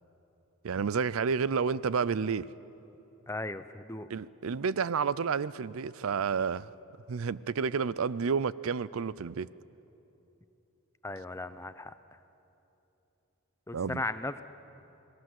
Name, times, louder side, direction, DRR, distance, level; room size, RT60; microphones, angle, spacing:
voice 1, 0.6-2.5 4.1-6.7 7.1-9.5 13.7-14.0, right 5 dB, 70° right, 19 dB, 0.5 m, -30 dB
voice 2, 3.3-4.1 11.0-11.9 13.7-14.4, left 2 dB, 10° left, 12 dB, 0.6 m, -36 dB
29.0 x 19.0 x 7.8 m, 3.0 s
head